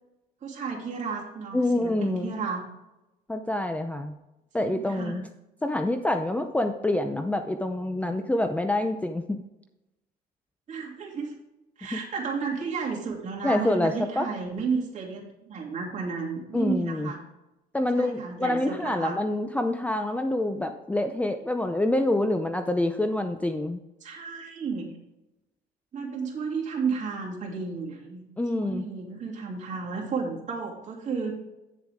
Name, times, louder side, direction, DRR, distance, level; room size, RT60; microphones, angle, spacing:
voice 1, 0.4-2.7 4.6-5.2 10.7-11.3 11.8-17.2 17.9-19.2 24.0-24.9 25.9-28.2 28.5-31.4, right 5 dB, 45° right, -2 dB, 2.9 m, -33 dB
voice 2, 1.5-2.3 3.3-4.1 4.5-5.3 5.6-9.4 11.9-12.0 13.4-14.3 16.5-17.1 17.7-23.8 28.4-28.9, left 1 dB, 10° left, 7 dB, 0.6 m, -26 dB
9.6 x 7.2 x 3.6 m, 0.95 s
cardioid pair, 110°, 17 cm